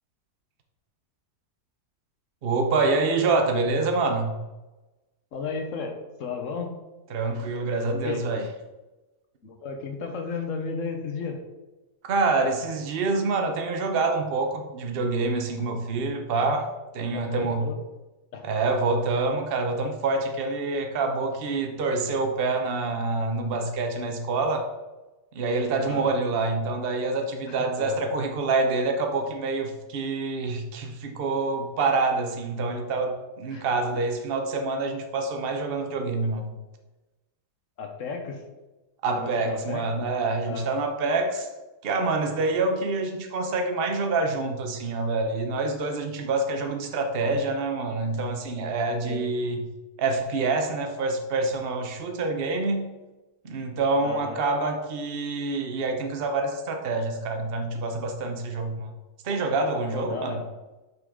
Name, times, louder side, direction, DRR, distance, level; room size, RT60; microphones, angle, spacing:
voice 1, 2.4-4.4 7.1-8.5 12.0-17.7 18.4-24.7 25.3-36.5 39.0-41.5 41.8-49.6 50.0-52.9 53.4-58.9 59.2-60.4, right 3 dB, 45° right, 4 dB, 0.9 m, -26 dB
voice 2, 5.3-6.7 8.0-8.2 9.4-11.4 17.1-17.8 18.3-18.5 25.9-26.1 27.5-27.9 33.5-33.7 37.8-38.4 39.1-39.8 40.4-40.7 49.0-49.2 54.0-54.4 59.9-60.4, left 4 dB, 55° left, 4 dB, 1.2 m, -34 dB
6.1 x 5.8 x 3.7 m, 1.1 s
omnidirectional pair, 1.8 m